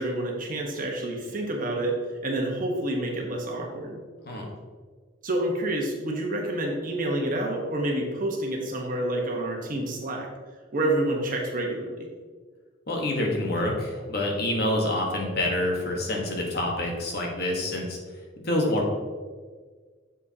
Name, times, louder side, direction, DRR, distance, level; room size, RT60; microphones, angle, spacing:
voice 1, 0.0-2.0 2.2-4.0 5.2-10.3 10.7-12.1, right 1 dB, 45° right, 0 dB, 1.3 m, -28 dB
voice 2, 12.9-18.0 18.4-18.9, left 1 dB, 60° left, 0 dB, 1.4 m, -27 dB
7.2 x 6.8 x 2.9 m, 1.5 s
head